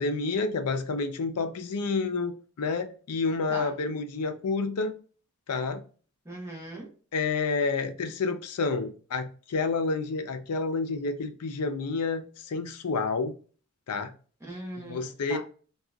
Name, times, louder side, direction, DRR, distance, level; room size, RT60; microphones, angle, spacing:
voice 1, 0.0-4.9 5.5-5.8 7.1-13.3 13.9-14.1 14.8-15.4, left 4 dB, 90° left, 0.5 m, -29 dB
voice 2, 6.2-6.9 14.4-15.4, right 1 dB, 10° right, 0.8 m, -39 dB
3.7 x 2.3 x 2.2 m
head